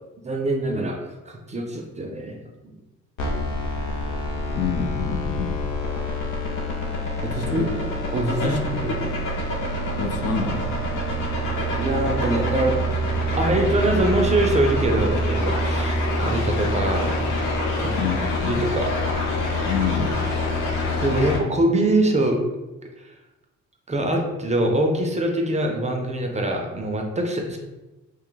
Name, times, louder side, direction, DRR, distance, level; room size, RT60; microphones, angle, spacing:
voice 1, 0.2-1.0 1.3-2.4 2.6-2.7 7.2-7.6 8.1-8.9 11.4-12.8 13.4-17.2 17.8-17.9 18.5-18.9 21.0-22.4 23.0-23.1 23.9-27.6, right 1 dB, 25° right, 2 dB, 0.4 m, -24 dB
sound 1, 3.2-21.4, left 1 dB, 85° left, 0.7 m, -25 dB
voice 2, 4.5-5.6 7.4-7.7 8.4-9.2 10.0-10.7 18.0-18.7 19.6-20.2, left 6 dB, 55° left, 4 dB, 0.5 m, -27 dB
2.6 x 2.2 x 3.8 m, 1.1 s
cardioid pair, 90°, 30 cm